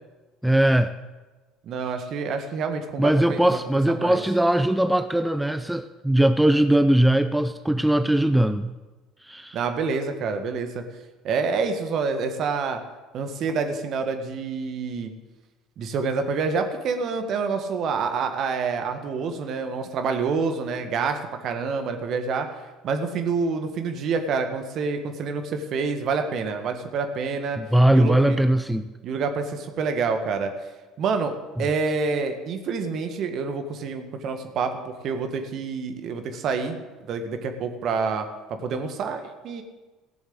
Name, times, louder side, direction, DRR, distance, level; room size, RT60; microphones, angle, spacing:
voice 1, 0.4-0.9 3.0-8.7 9.3-9.6 27.6-28.9, right 1 dB, 5° right, 10 dB, 0.6 m, -20 dB
voice 2, 1.6-3.6 3.9-4.2 9.5-10.8 11.2-12.8 13.1-15.1 15.8-22.5 22.8-27.6 27.9-28.4 29.0-30.5 31.0-36.8 37.0-38.3 38.6-39.6, right 5 dB, 55° right, 6 dB, 1.7 m, -27 dB
15.0 x 7.1 x 8.0 m, 1.2 s
hypercardioid pair, 65°, 0 cm